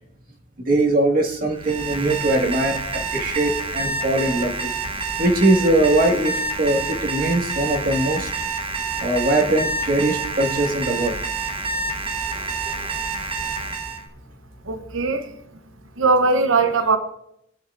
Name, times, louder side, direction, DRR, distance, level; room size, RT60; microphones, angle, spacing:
voice 1, 0.7-4.5 5.2-8.3 9.0-11.2, right 1 dB, 45° right, 1.9 m, -21 dB
Alarm, 1.5-14.0, right 4 dB, 25° right, 1.0 m, -28 dB
voice 2, 14.7-15.3 16.0-17.0, right 3 dB, 65° right, 0.9 m, -19 dB
19.5 x 9.5 x 2.6 m
head